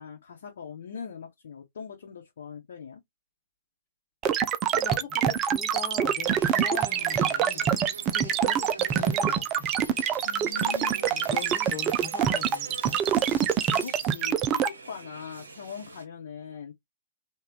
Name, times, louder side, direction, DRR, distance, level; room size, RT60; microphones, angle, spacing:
voice 1, 0.0-3.0 10.2-11.3 13.6-16.7, left 6 dB, 60° left, 0.9 m, -41 dB
sound 1, 4.2-14.7, right 8 dB, 30° right, 0.4 m, -25 dB
voice 2, 4.7-7.7 8.1-9.7 11.3-13.0, left 5 dB, 35° left, 1.2 m, -41 dB
sound 2, 6.2-16.1, right 3 dB, 75° right, 0.7 m, -45 dB
3.3 x 2.3 x 3.7 m
figure-of-eight pair, 105°, 0 cm